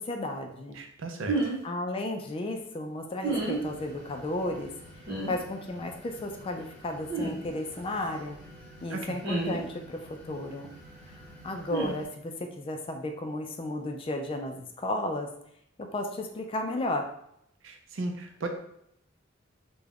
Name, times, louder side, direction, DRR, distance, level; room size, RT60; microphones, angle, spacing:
voice 1, 0.0-0.8 1.6-4.7 5.3-8.4 8.8-10.7 11.1-15.3 15.9-17.1, left 1 dB, 30° left, 4 dB, 0.3 m, -34 dB
voice 2, 0.7-1.5 8.9-9.2 17.6-18.5, right 2 dB, 80° right, 4 dB, 0.5 m, -36 dB
sound 1, 1.3-1.6 3.2-3.6 5.1-5.3 7.1-7.3 9.2-9.6 11.7-11.9, right 2 dB, 60° right, 1.0 m, -29 dB
sound 2, 3.2-12.1, equal, 5° left, 0.8 m, -50 dB
2.4 x 2.1 x 3.3 m, 0.75 s
head